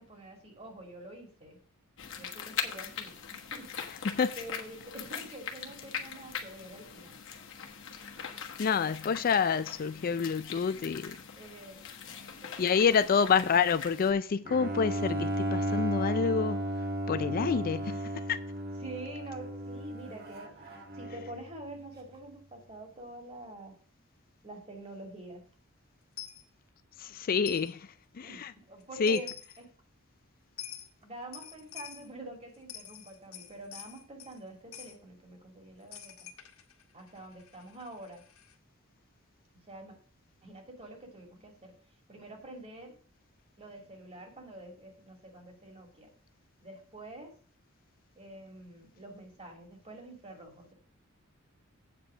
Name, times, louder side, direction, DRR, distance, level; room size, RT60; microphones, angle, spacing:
voice 1, 0.0-1.6 2.2-3.9 4.4-7.2 11.4-11.8 12.1-13.9 18.8-23.8 24.4-25.4 28.2-29.7 31.0-36.3 36.9-38.2 39.7-40.0 40.4-41.7 42.1-43.0 43.6-46.1 46.6-47.3 48.2-50.7, right 2 dB, 30° right, 2.7 m, -47 dB
sound 1, 2.0-14.1, left 7 dB, 60° left, 1.4 m, -41 dB
voice 2, 8.6-11.2 12.6-16.7 17.1-18.0 18.3-18.4 27.0-27.9 28.2-28.5 29.0-29.2, left 6 dB, 45° left, 0.4 m, -27 dB
Bowed string instrument, 14.4-21.5, equal, 50° right, 1.7 m, -34 dB
Coin (dropping), 26.2-26.4 27.5-27.7 28.8-28.9 29.1-29.6 30.6-30.9 31.3-32.1 32.5-34.4 34.7-35.0 35.9-38.6, left 10 dB, 85° left, 1.4 m, -46 dB
8.4 x 5.0 x 7.4 m
head